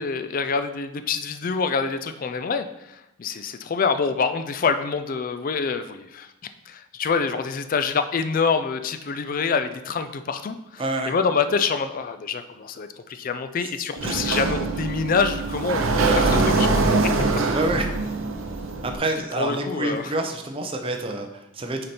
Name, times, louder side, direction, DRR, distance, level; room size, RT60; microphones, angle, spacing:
voice 1, 0.0-6.3 6.7-16.8 19.4-20.0, left 5 dB, 40° left, 10 dB, 0.3 m, -26 dB
voice 2, 10.8-11.1 13.6-13.7 14.0-14.2 16.2-16.4 17.5-17.9 18.8-21.8, right 2 dB, 25° right, 4 dB, 0.6 m, -28 dB
Sliding door, 14.0-19.0, right 3 dB, 70° right, 0.7 m, -23 dB
6.3 x 4.2 x 4.4 m, 0.92 s
head